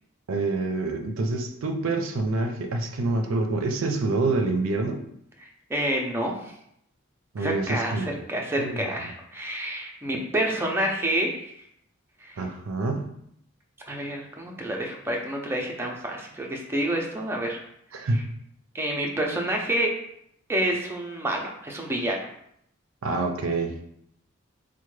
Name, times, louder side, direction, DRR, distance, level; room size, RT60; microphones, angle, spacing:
voice 1, 0.3-5.0 7.3-8.1 8.6-8.9 12.4-13.1 17.9-18.2 23.0-23.8, right 3 dB, 85° right, 5 dB, 0.5 m, -27 dB
voice 2, 5.4-6.5 7.4-11.5 12.2-12.4 13.9-17.6 18.1-18.2 18.7-19.9 20.5-22.3, right 1 dB, 10° right, 0 dB, 0.5 m, -28 dB
4.3 x 2.1 x 3.1 m, 0.72 s
head